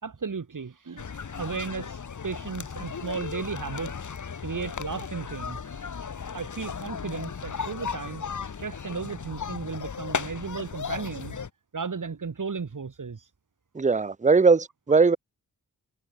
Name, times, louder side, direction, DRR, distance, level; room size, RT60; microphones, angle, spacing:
voice 1, 0.0-4.1 4.4-6.1 6.3-11.4 11.7-13.3, right 5 dB, 55° right, 4.4 m, -35 dB
sound 1, 1.0-11.5, left 6 dB, 50° left, 1.6 m, -36 dB
voice 2, 13.8-15.2, right 4 dB, 20° right, 0.7 m, -20 dB
cardioid pair, 50°, 38 cm